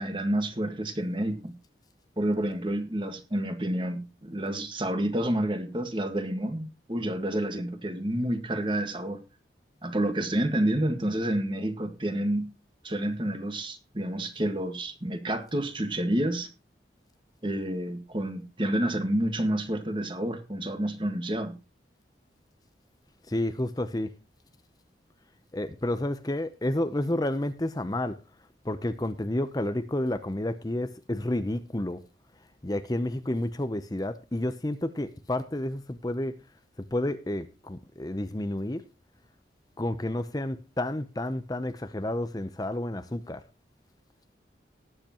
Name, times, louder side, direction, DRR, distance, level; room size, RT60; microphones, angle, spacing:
voice 1, 0.0-1.5 2.2-9.2 9.8-12.5 12.8-16.5 17.4-21.6, right 1 dB, 30° right, 1.7 m, -29 dB
voice 2, 23.2-24.1 25.5-28.2 28.6-32.0 32.4-36.4 36.9-38.8 39.8-43.4, left 1 dB, 20° left, 0.7 m, -30 dB
19.0 x 8.0 x 3.0 m
head